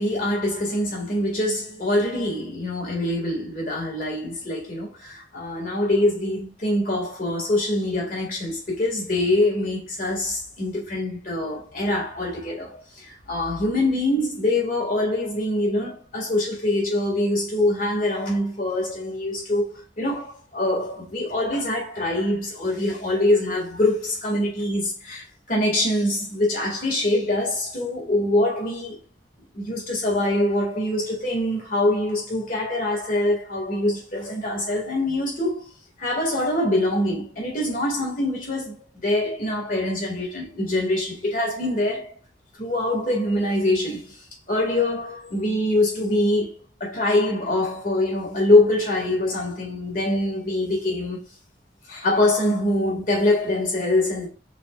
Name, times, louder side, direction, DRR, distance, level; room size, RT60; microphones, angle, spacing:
voice 1, 0.0-19.7 20.0-29.0 29.5-35.7 36.0-42.1 42.6-44.1 44.5-46.5 46.8-51.2 51.9-54.3, left 1 dB, 50° left, 2.1 m, -24 dB
5.7 x 3.7 x 2.4 m
head